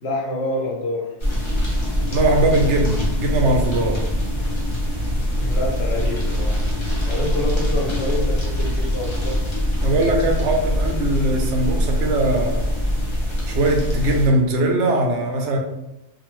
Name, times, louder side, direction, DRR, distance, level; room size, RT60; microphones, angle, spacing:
voice 1, 0.0-1.1 5.4-6.6 7.0-9.4, left 1 dB, 70° left, -1 dB, 1.0 m, -27 dB
sound 1, 1.2-14.3, equal, 35° left, 0.6 m, -23 dB
voice 2, 2.1-4.0 9.8-12.6 13.5-15.6, right 1 dB, 80° right, 2 dB, 0.9 m, -20 dB
2.6 x 2.2 x 3.0 m, 0.90 s
omnidirectional pair, 1.2 m